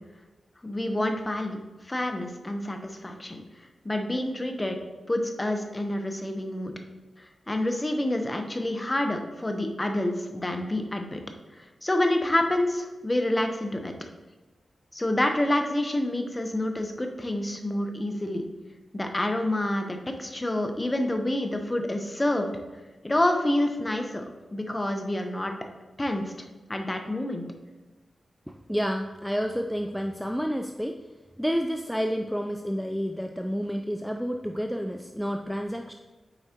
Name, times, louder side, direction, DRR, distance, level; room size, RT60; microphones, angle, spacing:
voice 1, 0.6-4.8 5.1-6.7 7.2-11.2 11.6-13.9 14.9-18.4 18.9-22.5 23.0-24.2 24.5-25.5 26.0-26.2 26.7-27.4, left 1 dB, 25° left, 5 dB, 0.9 m, -28 dB
voice 2, 28.5-31.0 31.4-35.9, equal, ahead, 4 dB, 0.4 m, -30 dB
8.0 x 4.7 x 2.9 m, 1.2 s
cardioid pair, 50°, 0 cm